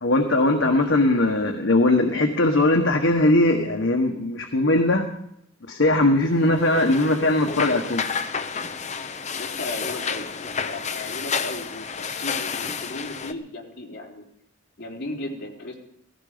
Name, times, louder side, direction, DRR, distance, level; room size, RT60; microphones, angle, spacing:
voice 1, 0.0-5.0 5.7-8.1, left 2 dB, 80° left, 3 dB, 1.4 m, -20 dB
sound 1, 6.6-13.3, left 6 dB, 35° left, 0.8 m, -30 dB
voice 2, 9.3-10.3 10.6-14.2 14.8-15.7, left 1 dB, 55° left, -1 dB, 3.7 m, -36 dB
17.0 x 16.0 x 5.1 m, 0.76 s
head